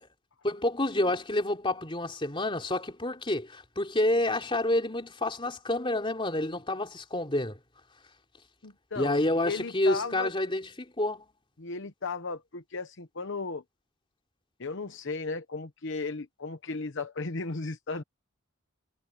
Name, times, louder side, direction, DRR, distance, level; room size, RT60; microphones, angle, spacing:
voice 1, 0.4-7.6 8.9-11.2, left 1 dB, 25° left, 3.4 m, -28 dB
voice 2, 8.6-10.3 11.6-13.6 14.6-18.0, left 3 dB, 60° left, 1.0 m, -35 dB
head